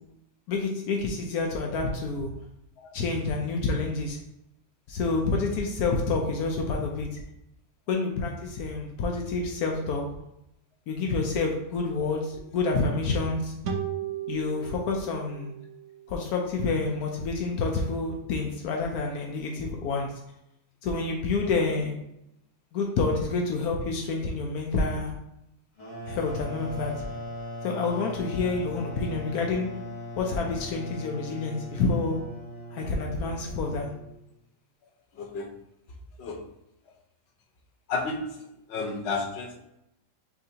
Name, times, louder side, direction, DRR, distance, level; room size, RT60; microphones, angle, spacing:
voice 1, 0.5-2.3 2.9-4.2 4.9-7.2 7.9-10.0 10.9-13.5 14.3-15.5 16.1-20.1 20.8-22.0 22.7-25.1 26.1-27.1 27.6-29.7 30.2-32.2 32.7-33.9, left 3 dB, 80° left, 1 dB, 1.1 m, -28 dB
sound 1, 13.6-17.0, right 8 dB, 60° right, 0.9 m, -36 dB
sound 2, 25.8-34.2, equal, 20° left, 1.5 m, -39 dB
voice 2, 35.2-35.5 36.2-36.4 37.9-38.4 38.7-39.6, left 3 dB, 55° left, 1 dB, 0.9 m, -31 dB
5.9 x 2.8 x 2.8 m, 0.83 s
omnidirectional pair, 1.6 m